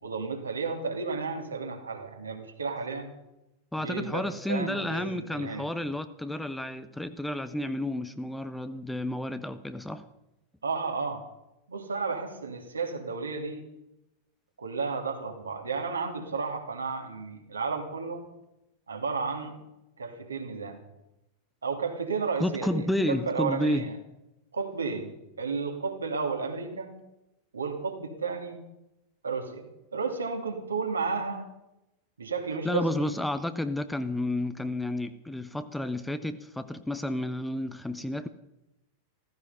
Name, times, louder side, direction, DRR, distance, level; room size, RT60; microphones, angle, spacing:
voice 1, 0.0-3.1 3.8-5.7 10.6-11.2 11.7-13.6 14.6-18.3 18.9-19.6 20.0-20.8 21.6-23.9 24.5-25.1 25.4-26.9 27.5-28.6 29.2-31.5 32.2-33.1, right 4 dB, 75° right, 2.7 m, -32 dB
voice 2, 3.7-10.1 22.4-23.9 32.6-38.3, left 1 dB, 5° left, 0.9 m, -31 dB
15.0 x 15.0 x 5.6 m
figure-of-eight pair, 90°, 0 cm